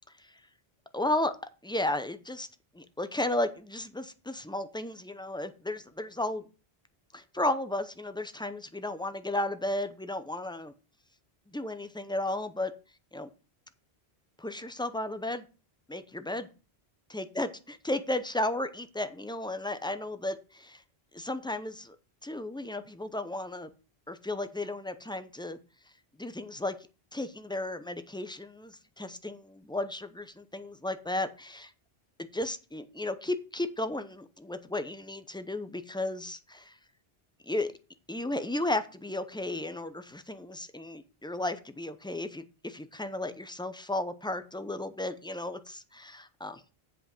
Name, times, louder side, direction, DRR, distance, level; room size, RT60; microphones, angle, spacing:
voice 1, 0.9-1.4 1.6-2.5 2.7-6.4 7.1-10.7 11.5-12.7 13.1-13.3 14.4-15.4 15.9-16.5 17.1-17.5 17.8-20.8 21.1-22.0 22.2-23.7 24.1-25.6 26.2-26.8 27.1-31.7 32.3-36.8 37.4-37.7 38.1-46.6, left 1 dB, 5° left, 10 dB, 0.6 m, -34 dB
7.8 x 5.2 x 6.0 m, 0.33 s
omnidirectional pair, 1.0 m